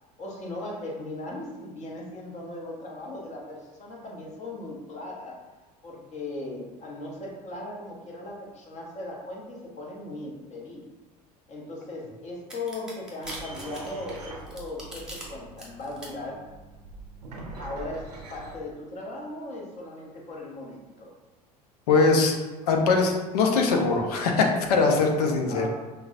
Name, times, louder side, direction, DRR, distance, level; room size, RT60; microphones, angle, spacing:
voice 1, 0.2-5.5 5.8-10.9 11.5-16.5 17.6-21.1 25.5-25.7, left 2 dB, 35° left, -1 dB, 1.0 m, -38 dB
sound 1, 12.5-15.2 15.6-16.1, right 1 dB, 5° right, 1.1 m, -41 dB
sound 2, 13.2-18.6, right 2 dB, 80° right, 0.6 m, -43 dB
voice 2, 21.9-22.4 22.6-25.7, left 4 dB, 70° left, 3 dB, 0.6 m, -22 dB
5.6 x 2.1 x 2.6 m, 1.2 s
figure-of-eight pair, 70°, 20 cm